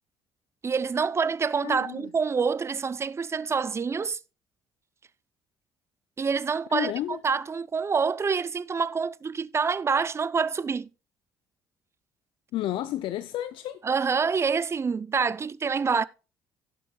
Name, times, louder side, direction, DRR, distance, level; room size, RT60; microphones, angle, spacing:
voice 1, 0.6-4.2 6.2-10.9 13.8-16.0, right 5 dB, 30° right, 0.5 m, -27 dB
voice 2, 1.6-2.1 6.7-7.2 12.5-13.8, left 13 dB, 60° left, 0.5 m, -31 dB
17.0 x 6.8 x 2.3 m
hypercardioid pair, 55°, 10 cm